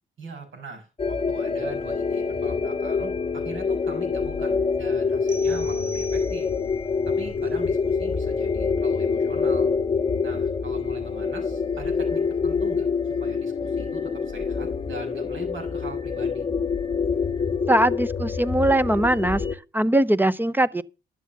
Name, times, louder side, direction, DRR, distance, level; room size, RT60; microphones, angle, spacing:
voice 1, 0.2-6.5 7.1-9.8 10.2-16.5, right 3 dB, 75° right, 6.3 m, -41 dB
sound 1, 1.0-19.5, left 5 dB, 25° left, 0.9 m, -26 dB
sound 2, 5.3-6.8, right 1 dB, 40° right, 3.9 m, -42 dB
voice 2, 17.7-19.4 19.7-20.8, right 1 dB, 10° right, 0.6 m, -21 dB
12.0 x 7.4 x 5.8 m
cardioid pair, 90°, 20 cm